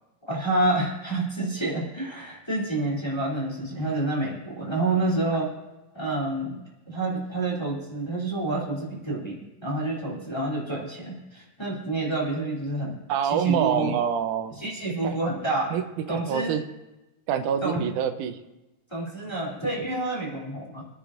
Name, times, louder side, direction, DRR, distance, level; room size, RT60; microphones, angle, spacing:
voice 1, 0.3-5.5 5.9-14.0 14.6-15.8 16.1-16.6 17.6-17.8 18.9-20.9, right 2 dB, 10° left, -5 dB, 2.7 m, -28 dB
voice 2, 13.1-14.6 15.0-15.2 15.7-15.8 16.1-16.6 17.3-18.4, right 8 dB, 90° right, 8 dB, 2.2 m, -26 dB
25.0 x 9.9 x 2.5 m, 1.1 s
omnidirectional pair, 3.4 m